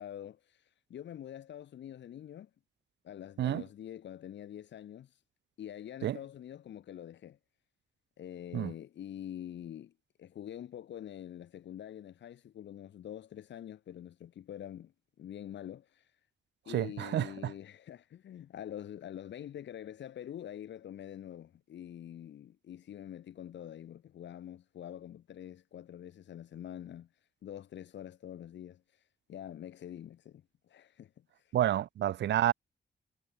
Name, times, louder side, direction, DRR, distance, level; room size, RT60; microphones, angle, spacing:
voice 1, 0.0-2.5 3.0-5.2 5.6-7.4 8.2-9.9 10.2-14.9 15.2-16.1 16.7-27.1 27.4-31.5, left 10 dB, 90° left, 1.8 m, -46 dB
voice 2, 16.7-17.5 31.5-32.5, right 12 dB, 75° right, 0.5 m, -29 dB
wide cardioid pair, 165°, 18 cm